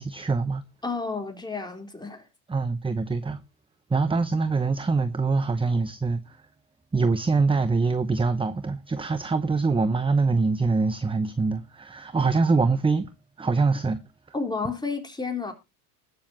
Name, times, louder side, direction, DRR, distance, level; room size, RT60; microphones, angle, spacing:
voice 1, 0.0-0.6 2.5-3.4 3.9-6.4 6.9-13.1 13.4-14.0, right 4 dB, 10° right, 0.9 m, -24 dB
voice 2, 0.8-2.3 14.3-15.5, left 4 dB, 10° left, 4.1 m, -31 dB
20.5 x 7.2 x 2.9 m
supercardioid pair, 95°, 46 cm